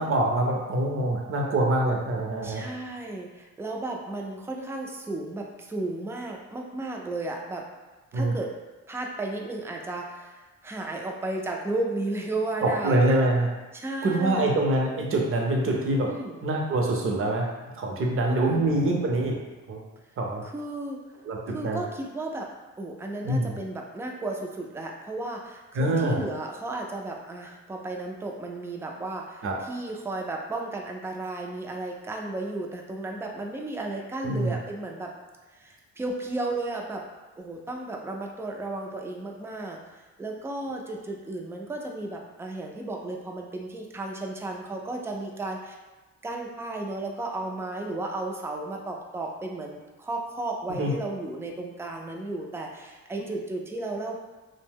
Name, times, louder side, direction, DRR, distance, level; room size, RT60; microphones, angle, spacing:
voice 1, 0.0-2.6 8.1-8.3 12.6-13.5 14.0-16.1 16.4-19.4 19.7-19.8 20.2-20.4 21.2-21.8 23.2-23.6 25.7-26.2 29.4-29.6 34.2-34.5 50.8-50.9 53.2-53.3, right 1 dB, 45° right, 0 dB, 0.6 m, -25 dB
voice 2, 2.4-7.7 8.1-8.5 8.9-13.2 13.7-14.6 16.1-16.4 18.2-18.6 20.4-21.0 21.5-22.5 22.8-35.1 35.5-37.0 37.4-45.8 46.2-54.2, right 2 dB, 10° right, 1 dB, 0.3 m, -34 dB
2.6 x 2.1 x 3.5 m, 1.2 s
cardioid pair, 90°, 30 cm